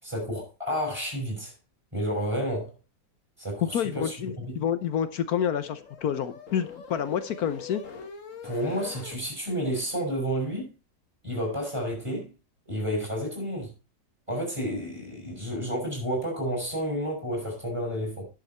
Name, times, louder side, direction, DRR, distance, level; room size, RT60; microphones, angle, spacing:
voice 1, 0.0-1.5 1.9-2.7 3.4-4.6 8.4-10.7 11.2-12.3 12.7-13.7 14.3-18.2, equal, 15° right, 6.0 m, -31 dB
voice 2, 3.6-7.8, left 9 dB, 65° left, 1.2 m, -28 dB
sound 1, 4.5-9.2, left 6 dB, 45° left, 1.6 m, -44 dB
11.0 x 7.4 x 4.3 m
omnidirectional pair, 1.9 m